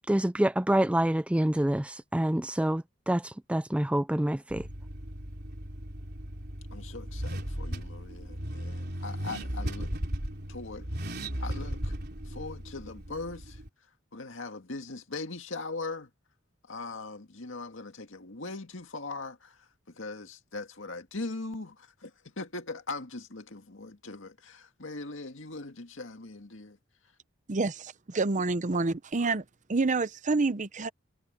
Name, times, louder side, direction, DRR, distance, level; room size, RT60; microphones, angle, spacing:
voice 1, 0.1-4.7, right 1 dB, 5° right, 0.4 m, -27 dB
Car / Accelerating revving vroom, 4.5-13.7, equal, 55° right, 3.7 m, -36 dB
voice 2, 6.7-9.9 10.5-10.9 11.4-11.9 12.2-13.6 14.1-16.1 16.7-26.8, left 3 dB, 70° left, 2.1 m, -40 dB
voice 3, 27.5-29.4 29.7-30.9, right 3 dB, 40° right, 0.7 m, -28 dB
head